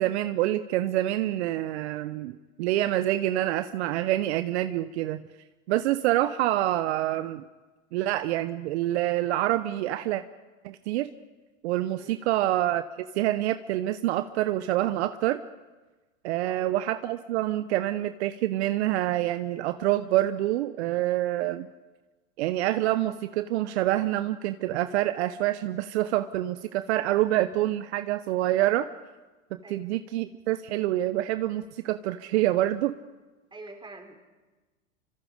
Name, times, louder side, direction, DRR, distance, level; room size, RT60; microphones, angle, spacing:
voice 1, 0.0-5.2 5.7-7.4 7.9-10.2 10.6-11.1 11.6-12.8 13.1-15.4 16.2-21.7 22.4-28.9 29.7-32.9, right 14 dB, 60° right, 11 dB, 1.0 m, -26 dB
voice 2, 16.4-16.8 29.6-29.9 33.5-34.2, right 2 dB, 10° right, 4 dB, 3.9 m, -45 dB
26.5 x 25.0 x 5.1 m, 1.2 s
hypercardioid pair, 105°, 38 cm